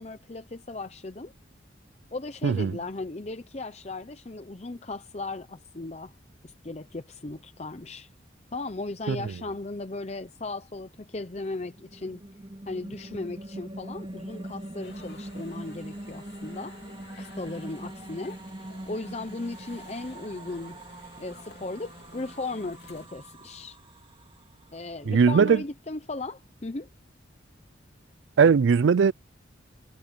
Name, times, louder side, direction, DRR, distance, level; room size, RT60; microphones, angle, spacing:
voice 1, 0.0-1.3 2.1-6.1 6.4-8.1 8.5-12.2 12.7-16.8 17.2-20.8 21.2-23.8 24.7-26.9, left 2 dB, 35° left, 0.7 m, -37 dB
sound 1, 11.8-24.9, right 1 dB, 25° right, 2.0 m, -43 dB
sound 2, 14.8-23.1, left 3 dB, 60° left, 3.1 m, -53 dB
voice 2, 25.1-25.6 28.4-29.1, right 6 dB, 75° right, 0.4 m, -19 dB
head